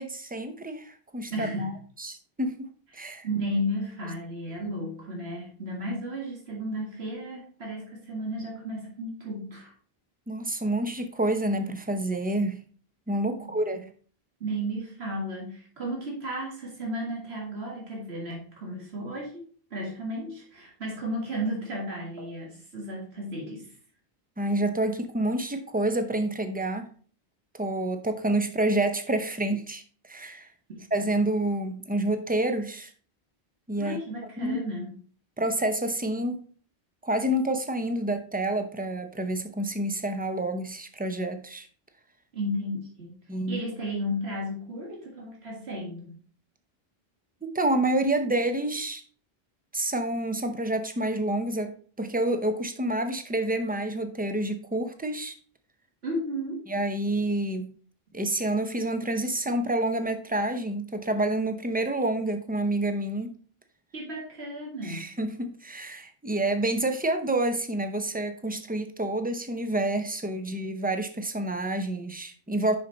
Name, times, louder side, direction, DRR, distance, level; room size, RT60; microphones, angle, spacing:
voice 1, 0.0-1.7 2.0-2.7 2.9-3.3 10.3-12.6 13.1-13.9 24.4-26.9 27.5-30.5 30.9-32.9 33.7-34.0 34.4-34.6 35.4-36.4 37.0-41.7 43.3-43.6 47.4-49.0 49.7-55.3 56.7-57.7 58.1-63.4 64.8-72.7, right 1 dB, 10° right, 0.7 m, -28 dB
voice 2, 1.3-1.7 2.9-9.7 13.3-13.5 14.4-23.7 30.7-30.8 33.8-34.9 42.3-43.1 43.5-46.1 56.0-56.7 63.9-65.0, equal, 90° right, 2.1 m, -34 dB
6.6 x 5.6 x 3.9 m
omnidirectional pair, 1.0 m